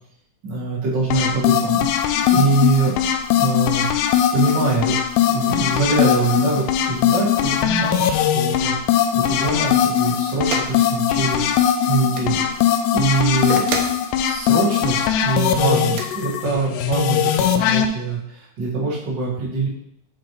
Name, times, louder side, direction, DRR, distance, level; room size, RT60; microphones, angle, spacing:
voice 1, 0.4-2.9 3.4-3.8 4.3-11.5 11.9-12.4 12.9-13.6 14.2-19.7, right 3 dB, 45° right, -7 dB, 1.4 m, -23 dB
sound 1, 1.1-17.9, left 9 dB, 85° left, 2.6 m, -20 dB
sound 2, 10.5-10.7 12.0-12.3 13.5-14.0 15.8-16.1, right 5 dB, 80° right, 2.3 m, -28 dB
7.4 x 4.1 x 3.2 m, 0.72 s
omnidirectional pair, 5.0 m